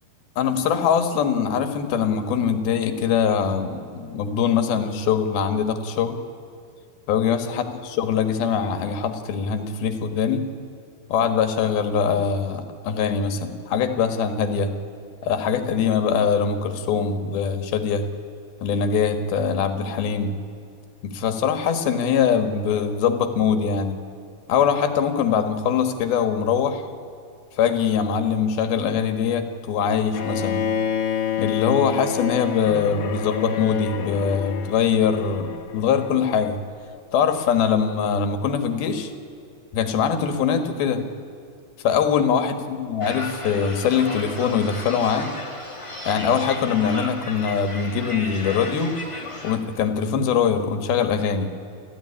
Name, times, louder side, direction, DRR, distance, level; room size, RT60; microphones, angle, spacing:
voice 1, 0.4-6.2 7.1-10.5 11.1-14.7 15.2-18.1 18.6-20.4 21.0-24.0 24.5-26.9 27.6-30.7 31.4-36.6 37.1-39.1 39.7-41.0 41.8-45.3 46.1-49.0 49.4-51.6, left 7 dB, 90° left, 7 dB, 3.5 m, -22 dB
Bowed string instrument, 30.1-36.2, left 7 dB, 65° left, 3.4 m, -28 dB
sound 1, 43.0-49.6, left 2 dB, 15° left, 1.2 m, -34 dB
29.5 x 14.0 x 10.0 m, 2.6 s
omnidirectional pair, 4.2 m